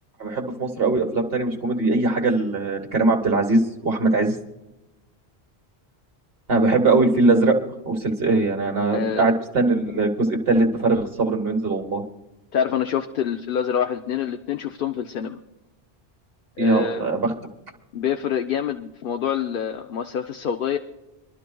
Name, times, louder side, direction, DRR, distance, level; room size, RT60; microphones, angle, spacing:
voice 1, 0.2-4.3 6.5-7.5 7.8-12.0 16.6-17.3, right 3 dB, 65° right, 3 dB, 1.7 m, -21 dB
voice 2, 8.9-9.3 12.5-15.4 16.6-17.0 17.9-20.8, left 8 dB, 60° left, 5 dB, 0.8 m, -26 dB
25.5 x 12.0 x 2.3 m, 1.0 s
omnidirectional pair, 1.1 m